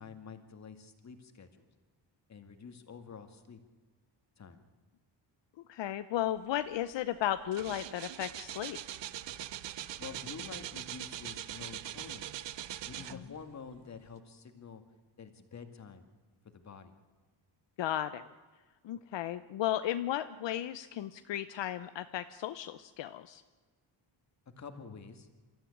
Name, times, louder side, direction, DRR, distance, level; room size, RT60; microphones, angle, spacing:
voice 1, 0.0-1.7 2.3-3.6 4.4-4.6 10.0-12.3 12.8-14.8 15.2-16.1 16.4-17.0 24.6-25.3, left 5 dB, 35° left, 7 dB, 2.2 m, -48 dB
voice 2, 5.7-8.8 13.1-13.2 17.8-18.3 18.8-23.4, left 12 dB, 75° left, 11 dB, 0.9 m, -35 dB
sound 1, 6.7-6.9 7.2-13.5 14.1-14.2, right 12 dB, 70° right, 1.0 m, -42 dB
26.5 x 13.5 x 10.0 m, 1.4 s
cardioid pair, 130°, 44 cm